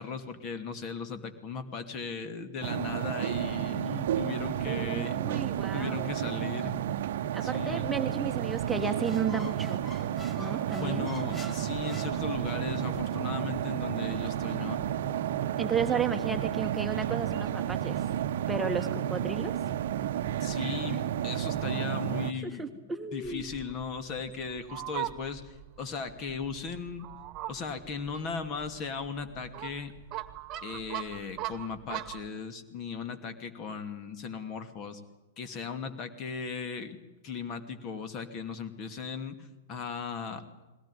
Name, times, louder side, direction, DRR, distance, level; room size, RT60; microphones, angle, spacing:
voice 1, 0.0-5.2 5.7-6.8 7.4-7.9 10.8-14.8 20.4-22.7 23.1-27.1 27.5-29.9 30.6-35.0 35.4-37.0 37.2-40.7, left 5 dB, 35° left, 9 dB, 2.5 m, -37 dB
sound 1, 2.6-22.3, right 11 dB, 60° right, 0.9 m, -31 dB
voice 2, 4.6-6.1 7.3-9.8 10.4-11.1 15.6-18.0 18.5-19.5 22.4-23.5, right 5 dB, 10° right, 4 dB, 1.4 m, -33 dB
Squeak, 8.7-12.8, left 4 dB, 10° left, 1.6 m, -47 dB
Fowl, 23.2-32.3, right 14 dB, 35° right, 1.5 m, -41 dB
21.0 x 18.5 x 9.9 m, 1.1 s
hypercardioid pair, 110°, 0 cm